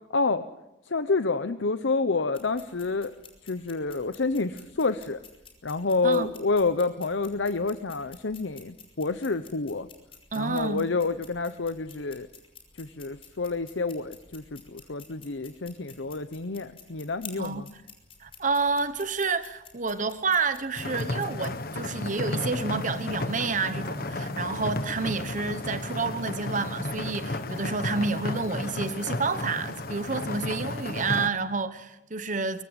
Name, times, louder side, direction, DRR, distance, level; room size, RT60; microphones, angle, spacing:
voice 1, 0.1-0.4 0.9-3.1 3.4-5.2 5.6-9.9 10.3-12.3 12.8-17.7, left 3 dB, 85° left, 0.9 m, -28 dB
sound 1, 2.3-21.5, left 5 dB, 30° left, 5.5 m, -51 dB
voice 2, 10.3-10.9 17.4-17.7 18.2-32.6, right 4 dB, 45° right, 1.1 m, -29 dB
sound 2, 20.7-31.3, left 2 dB, 55° left, 1.5 m, -33 dB
23.5 x 23.5 x 8.1 m
head